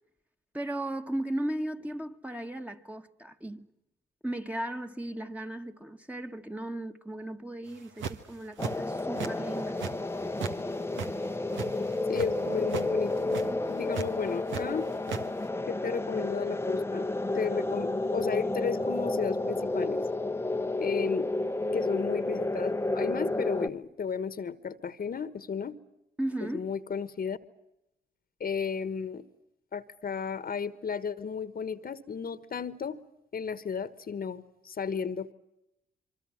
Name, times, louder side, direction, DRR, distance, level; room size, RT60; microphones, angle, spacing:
voice 1, 0.5-3.7 4.2-9.9 26.2-26.7, right 1 dB, 5° right, 1.5 m, -36 dB
sound 1, 7.7-8.3 8.6-9.3 9.6-10.6 10.8-12.3 12.6-12.9 13.2-13.5 13.9-14.6 14.9-15.2, right 7 dB, 75° right, 1.6 m, -36 dB
sound 2, 8.6-23.7, left 2 dB, 10° left, 1.0 m, -31 dB
voice 2, 12.1-13.4 13.7-14.9 15.7-17.1 17.3-20.0 20.8-21.3 21.7-25.8 26.5-27.4 28.4-29.2 29.7-33.0 33.3-35.3, left 6 dB, 50° left, 1.4 m, -34 dB
26.0 x 24.5 x 7.6 m
supercardioid pair, 55°, 20 cm